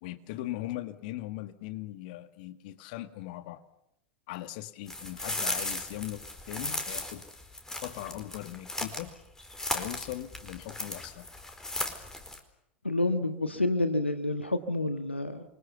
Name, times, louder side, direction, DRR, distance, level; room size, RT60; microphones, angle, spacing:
voice 1, 0.0-3.6 4.3-7.2 7.8-9.1 9.7-11.3, left 15 dB, 55° left, 11 dB, 1.9 m, -39 dB
sound 1, 4.9-9.1 9.4-12.4, left 2 dB, 10° left, 4.4 m, -36 dB
voice 2, 12.8-15.4, left 2 dB, 85° left, 10 dB, 1.5 m, -28 dB
29.0 x 24.5 x 7.0 m, 0.81 s
figure-of-eight pair, 85°, 6 cm